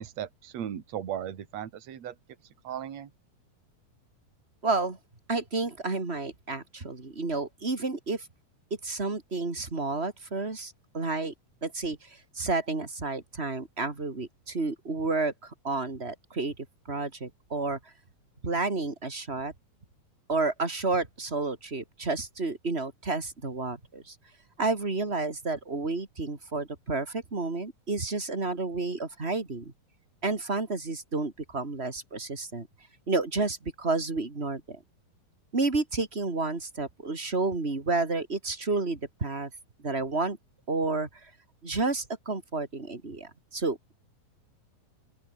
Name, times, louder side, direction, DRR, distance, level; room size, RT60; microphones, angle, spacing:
voice 1, 0.0-2.1 2.6-3.1, right 10 dB, 50° right, 3.2 m, -36 dB
voice 2, 4.6-5.0 5.3-8.3 8.8-11.3 11.6-12.1 12.3-16.5 16.9-17.8 18.4-19.5 20.3-24.1 24.6-29.7 30.2-32.7 33.1-34.8 35.5-39.5 39.8-40.4 40.7-41.1 41.6-43.9, right 3 dB, 20° right, 2.9 m, -30 dB
open air
omnidirectional pair, 4.2 m